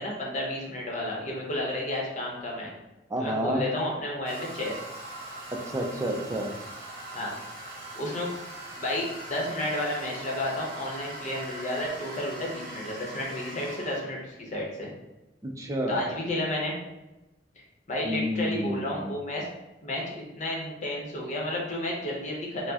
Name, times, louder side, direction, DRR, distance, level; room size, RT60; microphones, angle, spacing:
voice 1, 0.0-2.7 3.2-4.9 7.1-7.3 8.0-8.3 8.8-14.9 15.9-16.7 17.9-19.5 19.8-20.0 20.3-22.7, left 1 dB, 40° left, -2 dB, 0.8 m, -31 dB
voice 2, 3.1-3.6 5.7-6.5 15.4-16.0 18.0-19.1, equal, 20° right, 2 dB, 0.4 m, -29 dB
Toilet flush, 4.3-14.0, right 1 dB, 50° right, 1.0 m, -41 dB
4.3 x 2.1 x 2.8 m, 1.0 s
head